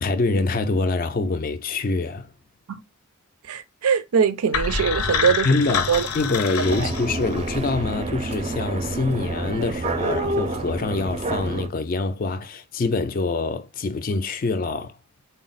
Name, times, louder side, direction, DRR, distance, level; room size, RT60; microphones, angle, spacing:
voice 1, 0.0-2.3 5.4-14.9, left 3 dB, 40° left, 0.3 m, -25 dB
voice 2, 3.4-6.1 6.6-6.9, right 6 dB, 85° right, 0.5 m, -23 dB
sound 1, 4.5-7.6, left 6 dB, 90° left, 0.6 m, -26 dB
sound 2, 6.6-11.7, right 2 dB, 30° right, 0.4 m, -28 dB
4.0 x 2.0 x 3.9 m
head